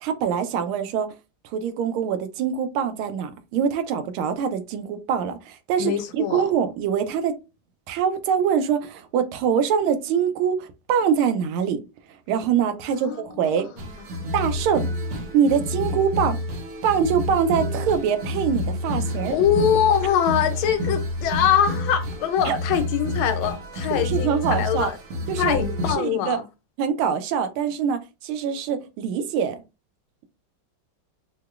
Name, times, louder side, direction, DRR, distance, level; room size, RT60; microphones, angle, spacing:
voice 1, 0.0-1.1 1.5-7.4 7.9-11.8 12.3-13.7 14.3-14.9 15.3-16.4 16.8-19.4 22.4-22.6 23.9-24.9 25.3-25.6 26.0-26.4 26.8-29.6, right 7 dB, 85° right, 1.5 m, -24 dB
voice 2, 5.8-6.5 13.0-13.3 13.8-13.9 19.1-25.0 25.4-26.4, left 9 dB, 80° left, 1.4 m, -23 dB
sound 1, 13.8-25.9, left 1 dB, 70° right, 1.3 m, -29 dB
4.7 x 2.1 x 2.3 m
omnidirectional pair, 2.3 m